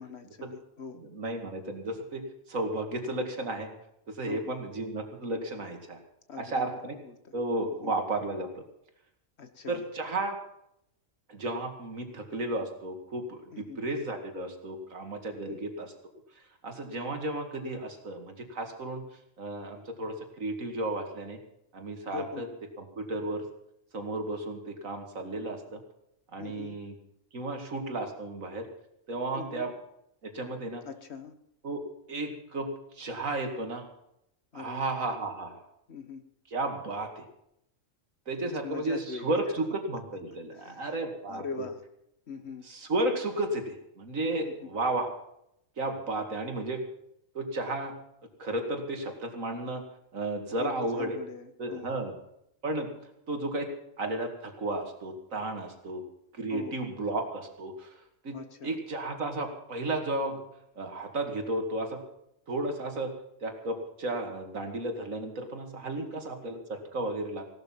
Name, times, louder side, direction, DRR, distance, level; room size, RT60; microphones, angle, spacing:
voice 1, 0.0-1.0 4.3-4.6 6.3-7.3 7.7-7.9 9.4-9.8 13.5-13.8 15.5-15.6 22.1-22.5 26.4-26.8 29.3-29.7 30.8-31.3 34.5-34.8 35.9-36.2 38.4-39.6 40.5-40.9 41.3-41.8 42.3-42.7 44.4-44.7 50.5-52.1 56.5-56.8 58.3-58.7 66.0-66.2, left 5 dB, 55° left, 9 dB, 1.5 m, -42 dB
voice 2, 1.0-2.2 2.5-3.7 4.1-6.0 6.4-6.9 7.3-8.6 9.7-10.4 11.3-15.9 16.6-19.0 19.4-21.4 21.7-22.5 22.8-23.5 23.9-25.8 26.3-26.9 27.3-28.7 29.1-29.7 30.2-30.8 31.6-31.8 32.1-33.9 34.5-35.6 36.5-37.3 38.3-41.7 42.7-45.1 45.8-46.8 47.3-47.9 48.4-49.8 50.1-51.2 51.6-52.1 52.6-52.9 53.3-56.0 56.3-58.4 58.6-60.4 60.7-62.0 62.5-63.1 63.4-67.5, right 2 dB, 85° right, 5 dB, 2.6 m, -33 dB
17.0 x 12.0 x 5.8 m, 0.77 s
omnidirectional pair, 1.4 m